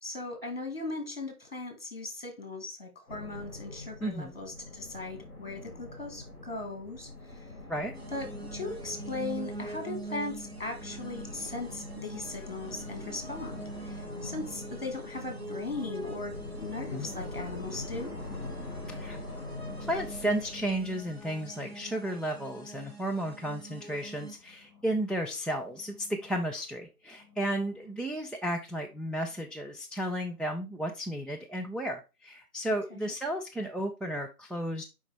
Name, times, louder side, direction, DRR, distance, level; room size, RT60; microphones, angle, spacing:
voice 1, 0.0-7.5 8.1-18.1 32.9-33.1, left 2 dB, 40° left, 1.9 m, -38 dB
sound 1, 3.1-21.5, left 2 dB, 20° left, 2.6 m, -43 dB
voice 2, 4.0-4.3 7.7-7.9 16.9-17.1 18.9-19.2 19.9-34.8, right 1 dB, ahead, 0.4 m, -33 dB
sound 2, 7.9-24.3, right 2 dB, 40° right, 0.8 m, -45 dB
sound 3, 14.1-23.4 23.9-24.9 25.4-26.4 27.2-27.9 28.7-29.4 30.2-30.5, left 2 dB, 25° right, 1.6 m, -52 dB
7.0 x 4.9 x 3.5 m
figure-of-eight pair, 165°, 46 cm